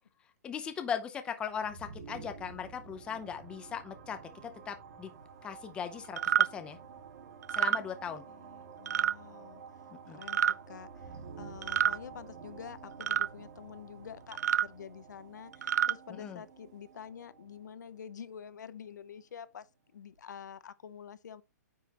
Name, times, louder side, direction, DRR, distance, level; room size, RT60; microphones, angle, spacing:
voice 1, 0.4-5.1 5.4-6.8 7.5-8.2 10.1-10.2 16.1-16.4, left 7 dB, 10° left, 0.7 m, -39 dB
sound 1, 1.4-19.1, right 6 dB, 45° right, 2.0 m, -51 dB
sound 2, 6.2-6.5 7.4-7.8 8.9-9.1 10.2-10.6 11.6-12.0 13.0-13.3 14.3-14.7 15.5-15.9, right 10 dB, 65° right, 0.4 m, -28 dB
voice 2, 8.3-9.6 10.1-19.7 19.9-21.4, left 8 dB, 80° left, 0.8 m, -48 dB
9.3 x 5.7 x 2.9 m
hypercardioid pair, 165°, 10 cm